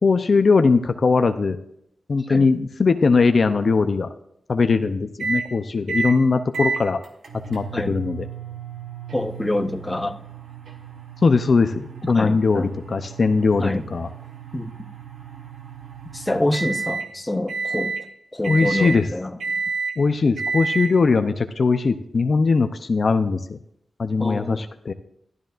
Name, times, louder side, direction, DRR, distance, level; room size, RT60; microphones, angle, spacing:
voice 1, 0.0-1.6 2.1-4.1 4.5-7.0 7.5-8.3 11.2-14.1 18.5-19.0 20.0-23.6 24.0-24.9, left 4 dB, 55° left, 9 dB, 0.6 m, -20 dB
sound 1, 5.2-5.5 5.9-6.2 6.5-17.1 17.5-18.0 18.4-19.0 19.4-20.0 20.4-20.9, right 4 dB, 80° right, 1.4 m, -31 dB
voice 2, 9.1-10.2 12.1-12.7 13.6-13.8 14.5-14.7 16.1-18.0 18.3-19.4 24.2-24.7, left 1 dB, 15° left, 8 dB, 0.7 m, -26 dB
12.5 x 12.5 x 2.6 m, 0.74 s
cardioid pair, 75°, 0 cm